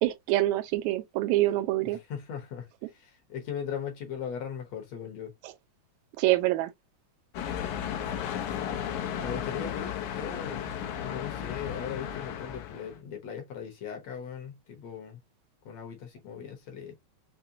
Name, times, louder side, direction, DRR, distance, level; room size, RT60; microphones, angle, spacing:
voice 1, 0.0-2.0 5.4-5.5 6.2-6.7, right 16 dB, 80° right, 1.8 m, -26 dB
voice 2, 1.9-5.3 8.3-10.7 11.0-15.2 15.6-16.9, left 7 dB, 65° left, 2.2 m, -39 dB
sound 1, 7.3-13.0, left 9 dB, 85° left, 2.2 m, -34 dB
5.7 x 2.2 x 2.6 m
omnidirectional pair, 3.4 m